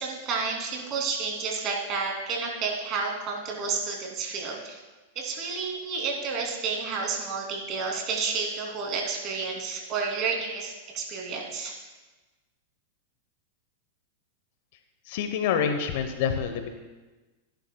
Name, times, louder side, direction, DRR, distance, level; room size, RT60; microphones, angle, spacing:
voice 1, 0.0-4.8 5.1-11.7, right 4 dB, 40° right, 0 dB, 3.0 m, -30 dB
voice 2, 15.1-16.7, left 7 dB, 55° left, 7 dB, 1.0 m, -27 dB
17.5 x 11.0 x 2.3 m, 1.2 s
hypercardioid pair, 95°, 0 cm